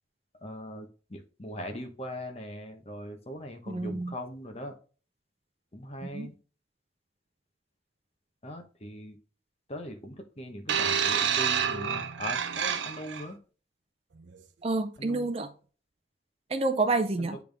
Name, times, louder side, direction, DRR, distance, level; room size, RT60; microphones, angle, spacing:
voice 1, 0.4-4.8 5.7-6.3 8.4-9.2 9.7-13.4 15.0-15.3 17.2-17.4, equal, 35° left, 1.0 m, -40 dB
voice 2, 3.7-4.1 6.1-6.3 14.6-15.5 16.5-17.4, right 3 dB, 30° right, 0.4 m, -28 dB
sound 1, 10.7-13.2 14.2-14.3, right 7 dB, 85° right, 0.6 m, -28 dB
8.5 x 3.5 x 3.4 m
head